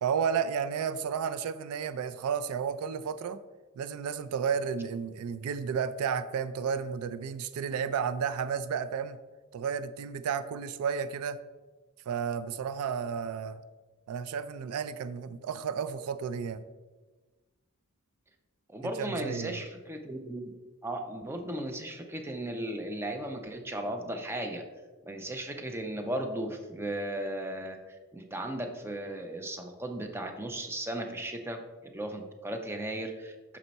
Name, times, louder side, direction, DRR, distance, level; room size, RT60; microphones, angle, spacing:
voice 1, 0.0-3.4 3.8-9.2 9.5-11.4 12.1-13.6 14.1-16.6 18.8-19.6, right 7 dB, 80° right, 13 dB, 0.3 m, -32 dB
voice 2, 18.7-20.5 20.8-24.6 25.0-27.8 28.1-33.6, right 1 dB, 10° right, 4 dB, 0.5 m, -36 dB
6.0 x 4.4 x 4.0 m, 1.3 s
head